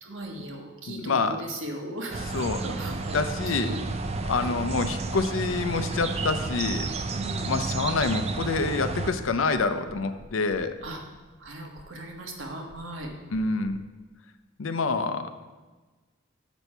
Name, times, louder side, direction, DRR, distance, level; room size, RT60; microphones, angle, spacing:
voice 1, 0.0-3.8 4.3-4.5 7.1-7.6 10.8-11.0 11.4-13.1, right 1 dB, 75° right, 1 dB, 1.4 m, -38 dB
voice 2, 0.9-1.4 2.3-2.6 3.1-3.7 4.2-6.9 7.5-10.7 13.3-13.8 14.6-15.3, left 3 dB, 80° left, 10 dB, 0.6 m, -27 dB
sound 1, 2.1-9.1, right 3 dB, 30° right, 0.5 m, -31 dB
sound 2, 9.2-13.7, equal, 55° right, 0.9 m, -51 dB
6.9 x 6.2 x 5.5 m, 1.3 s
head